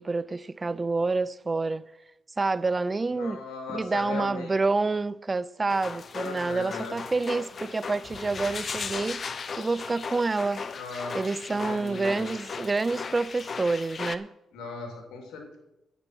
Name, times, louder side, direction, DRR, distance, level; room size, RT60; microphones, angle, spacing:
voice 1, 0.0-1.8 2.4-3.4 3.7-9.2 9.6-10.6 11.1-14.3, right 3 dB, 25° right, 0.4 m, -28 dB
voice 2, 3.1-4.5 6.1-7.0 10.7-11.2 11.5-12.3 14.5-15.6, left 4 dB, 85° left, 3.0 m, -38 dB
sound 1, 5.7-14.2, left 5 dB, 45° left, 0.7 m, -37 dB
9.8 x 9.7 x 6.0 m
cardioid pair, 90°, 0 cm